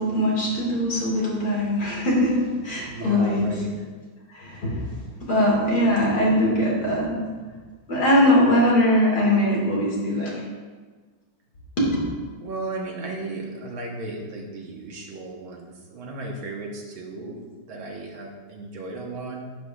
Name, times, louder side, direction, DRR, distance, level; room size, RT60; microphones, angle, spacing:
voice 1, 0.0-3.6 4.3-4.9 5.2-7.2 7.9-10.3 11.8-11.9, left 1 dB, 50° left, -4 dB, 2.8 m, -21 dB
voice 2, 2.9-3.8 12.4-17.4 17.7-19.4, right 2 dB, 85° right, -1 dB, 2.1 m, -35 dB
11.0 x 8.3 x 2.5 m, 1.4 s
omnidirectional pair, 2.2 m